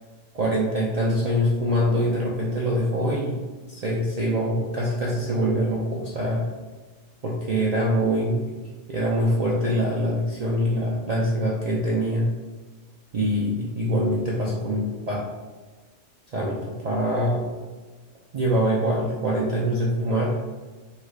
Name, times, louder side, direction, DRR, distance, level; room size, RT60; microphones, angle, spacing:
voice 1, 0.3-3.4 3.7-6.5 7.2-8.5 8.9-12.3 13.1-15.2 16.3-17.4 18.3-20.4, equal, 75° right, -5 dB, 0.3 m, -24 dB
3.4 x 2.3 x 3.2 m, 1.3 s
omnidirectional pair, 1.3 m